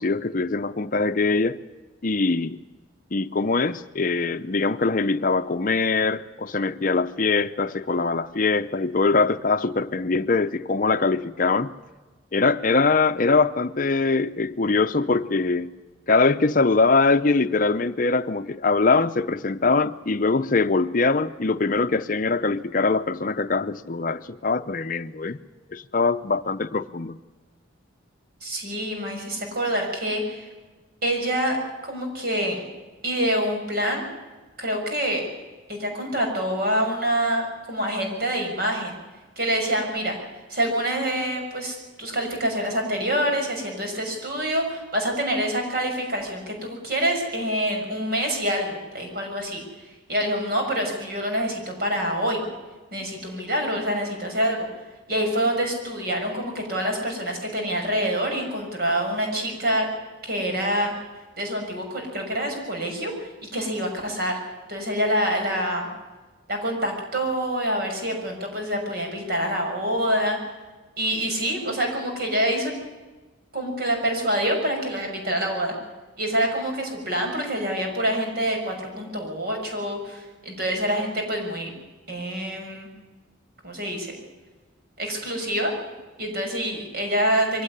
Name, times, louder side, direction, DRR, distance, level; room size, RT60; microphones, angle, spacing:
voice 1, 0.0-1.6 2.0-2.6 3.1-11.7 12.3-15.7 16.1-25.4 25.7-27.2, left 3 dB, 45° left, 0.6 m, -22 dB
voice 2, 28.4-30.5 31.0-31.6 31.8-32.6 33.0-34.0 34.6-35.2 35.7-39.0 39.4-40.2 40.5-49.6 50.1-52.4 52.9-54.7 55.1-59.9 60.2-60.9 61.4-64.4 64.7-65.9 66.5-70.4 71.0-72.7 73.5-75.7 76.2-81.7 82.1-82.9 83.6-84.1 85.0-85.7 86.2-87.6, equal, 50° right, 6.6 m, -26 dB
23.0 x 17.0 x 9.9 m
head